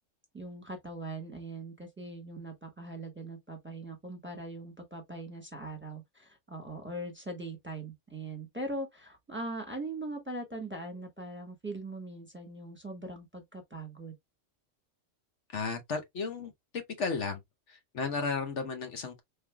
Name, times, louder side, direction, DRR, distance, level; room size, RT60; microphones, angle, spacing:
voice 1, 0.3-14.1, right 2 dB, 10° right, 1.2 m, -41 dB
voice 2, 15.5-17.4 17.7-19.2, left 4 dB, 65° left, 1.2 m, -34 dB
5.4 x 3.3 x 2.2 m
omnidirectional pair, 1.3 m